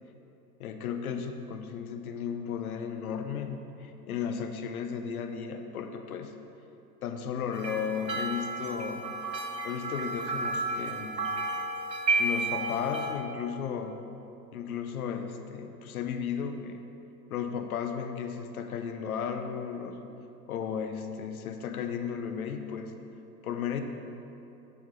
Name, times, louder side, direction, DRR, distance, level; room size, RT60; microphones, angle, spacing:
voice 1, 0.6-6.3 7.0-9.1 9.6-11.3 12.2-14.0 14.5-16.8 17.3-20.1 20.5-23.0 23.4-23.8, left 7 dB, 60° left, 6 dB, 0.8 m, -34 dB
sound 1, 7.5-13.1, right 2 dB, 90° right, 1.0 m, -32 dB
9.0 x 6.0 x 4.0 m, 2.9 s
figure-of-eight pair, 105°, 50 cm